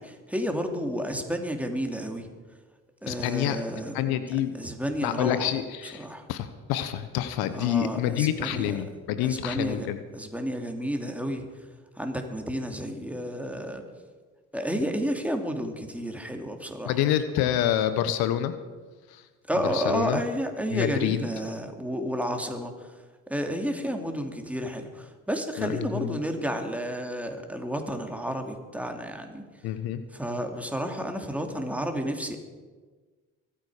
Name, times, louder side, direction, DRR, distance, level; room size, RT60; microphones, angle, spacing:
voice 1, 0.0-2.3 3.0-4.0 4.5-5.5 6.0-6.3 7.5-8.8 9.2-9.9 10.1-11.5 11.9-13.8 14.5-17.0 19.5-22.9 23.3-29.4 30.1-32.4, equal, 5° right, 4 dB, 2.7 m, -31 dB
voice 2, 3.1-3.6 3.9-4.5 5.0-10.0 16.8-18.5 19.1-19.2 19.5-20.2 20.7-21.2 25.6-26.2 29.6-30.0, left 11 dB, 80° left, 11 dB, 1.0 m, -27 dB
24.0 x 9.0 x 5.0 m, 1.4 s
hypercardioid pair, 60°, 37 cm